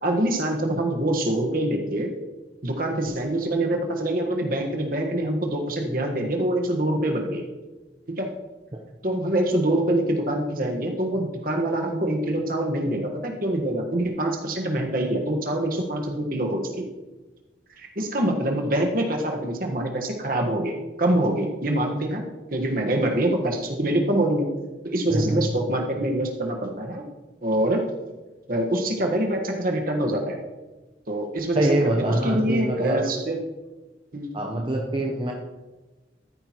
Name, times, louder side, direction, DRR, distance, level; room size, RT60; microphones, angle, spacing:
voice 1, 0.0-2.1 2.6-7.4 8.2-8.3 9.0-16.8 17.8-22.2 22.5-24.5 24.8-27.0 27.4-27.8 28.5-30.4 31.1-33.4 34.1-34.4, right 1 dB, 50° right, 2 dB, 1.5 m, -25 dB
voice 2, 25.1-25.4 31.5-33.1 34.3-35.3, right 1 dB, 30° right, 0 dB, 0.9 m, -24 dB
13.5 x 9.9 x 3.1 m, 1.2 s
head